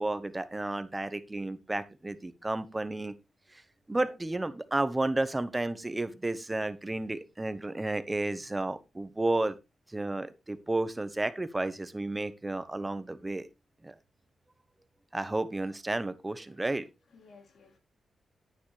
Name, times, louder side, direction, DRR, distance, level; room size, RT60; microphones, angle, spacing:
voice 1, 0.0-3.1 3.5-3.6 3.9-9.6 9.9-13.5 13.8-13.9 15.1-16.9, right 2 dB, 20° right, 1.1 m, -32 dB
voice 2, 16.4-17.8, left 4 dB, 70° left, 2.7 m, -59 dB
10.0 x 9.2 x 3.2 m
cardioid pair, 65°, 0 cm